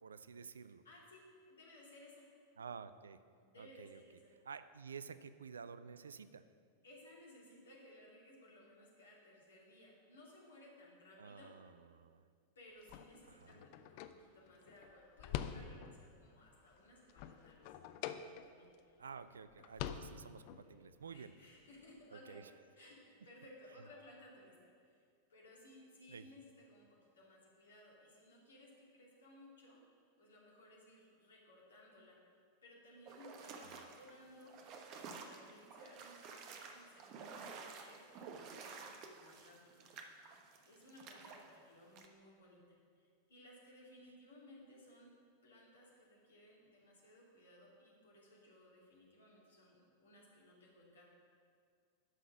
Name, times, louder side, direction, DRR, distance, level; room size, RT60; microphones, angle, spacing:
voice 1, 0.0-0.8 2.6-3.2 3.6-4.0 4.4-6.4 11.2-12.2 13.3-13.6 19.0-21.3 22.1-22.4 26.1-26.3 33.6-33.8, right 6 dB, 70° right, 13 dB, 0.4 m, -51 dB
voice 2, 0.8-2.3 3.4-4.3 6.8-11.5 12.5-17.7 18.0-19.0 20.6-22.4 22.7-25.0 25.3-26.9 27.1-29.8 30.2-32.2 32.6-34.5 34.9-39.9 40.6-42.6 43.0-45.1 45.4-51.0, left 1 dB, 70° left, -3 dB, 2.6 m, -60 dB
sound 1, 12.8-16.1 16.5-18.8 19.1-19.2 19.5-20.7, left 10 dB, 45° left, 0.5 m, -46 dB
sound 2, 33.1-41.4 42.0-42.1, right 5 dB, 40° right, 1.0 m, -52 dB
11.5 x 5.9 x 6.3 m, 2.1 s
figure-of-eight pair, 90°, 0 cm